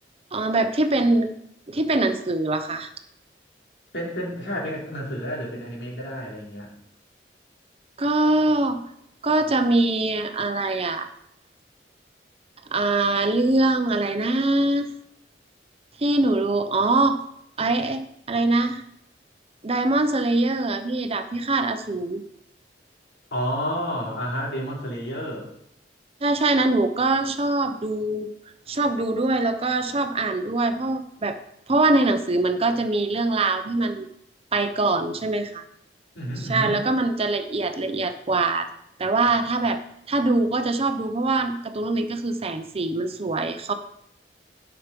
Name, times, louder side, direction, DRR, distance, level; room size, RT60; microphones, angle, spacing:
voice 1, 0.3-1.3 1.7-2.9 8.0-8.8 9.2-11.1 12.7-14.9 16.0-17.2 17.6-18.0 18.3-18.8 19.6-22.2 26.2-28.3 28.7-31.4 31.7-34.1 34.5-35.6 36.4-38.7 39.0-39.8 40.1-43.7, right 2 dB, 35° right, 9 dB, 0.7 m, -23 dB
voice 2, 3.9-6.7 23.3-25.5 36.1-36.8, equal, 70° left, -3 dB, 3.2 m, -30 dB
10.5 x 5.9 x 5.3 m, 0.72 s
head